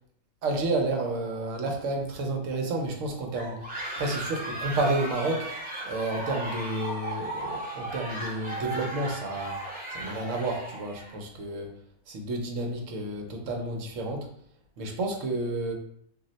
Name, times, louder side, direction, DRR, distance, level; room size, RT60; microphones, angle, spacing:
voice 1, 0.4-3.6 4.0-5.5 5.8-9.6 9.9-11.7 12.1-14.3 14.8-15.7, right 2 dB, 75° right, 1 dB, 1.0 m, -30 dB
sound 1, 3.3-11.2, right 1 dB, 10° right, 0.5 m, -36 dB
2.6 x 2.0 x 3.8 m, 0.66 s
omnidirectional pair, 1.4 m